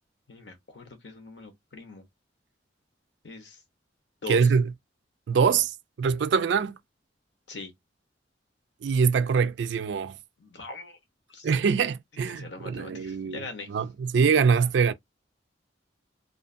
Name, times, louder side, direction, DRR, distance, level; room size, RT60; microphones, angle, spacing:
voice 1, 0.3-2.0 3.2-3.6 4.2-4.5 7.5-7.7 10.4-11.0 11.3-11.5 12.2-13.7, left 3 dB, 75° left, 0.9 m, -41 dB
voice 2, 4.3-4.7 5.3-6.7 8.8-10.2 11.4-14.9, right 6 dB, 70° right, 0.3 m, -24 dB
2.5 x 2.4 x 2.5 m
head